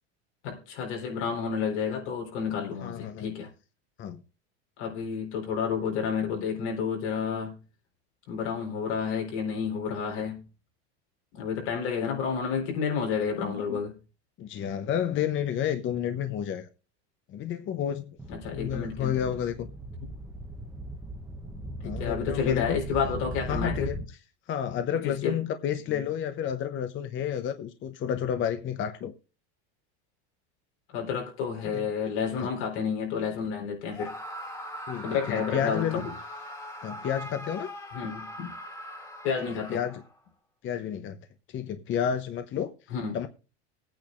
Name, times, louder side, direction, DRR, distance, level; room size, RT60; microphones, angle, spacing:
voice 1, 0.4-3.5 4.8-7.6 8.3-10.4 11.3-13.9 18.3-19.3 21.8-23.9 24.9-25.4 25.9-26.0 30.9-34.1 35.0-36.1 37.9-38.5 39.2-39.8 42.9-43.2, left 6 dB, 85° left, 3.9 m, -30 dB
voice 2, 2.8-3.3 4.0-4.2 13.4-13.8 14.4-16.7 17.3-18.2 18.5-19.7 21.8-22.8 23.5-24.0 24.5-29.1 31.6-31.9 32.4-32.5 34.9-36.0 36.8-37.7 39.7-40.0 40.6-41.2 41.5-42.7 43.1-43.3, left 9 dB, 35° left, 0.9 m, -30 dB
sound 1, 18.2-24.1, right 1 dB, 5° right, 0.9 m, -38 dB
Screaming, 33.9-40.2, equal, 10° left, 1.8 m, -41 dB
20.5 x 9.0 x 2.5 m
supercardioid pair, 125°, 34 cm